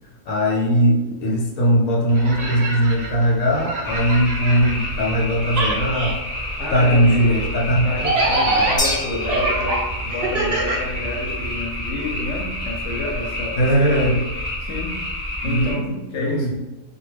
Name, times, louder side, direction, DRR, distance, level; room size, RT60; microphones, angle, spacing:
voice 1, 0.3-6.2 6.7-8.1 8.6-8.7 13.6-14.2 15.4-15.8 16.1-16.5, equal, 90° left, -2 dB, 1.0 m, -19 dB
sound 1, 2.1-5.2 5.5-11.5, right 2 dB, 80° right, 0.3 m, -25 dB
sound 2, 3.8-15.7, left 1 dB, 25° left, 0.8 m, -29 dB
voice 2, 6.6-7.4 7.8-13.6 13.9-14.1 14.6-15.1 15.4-16.5, left 2 dB, 65° left, 0 dB, 0.8 m, -29 dB
sound 3, 8.8-10.2, left 1 dB, 5° left, 0.4 m, -28 dB
2.2 x 2.2 x 3.2 m, 1.1 s
omnidirectional pair, 1.4 m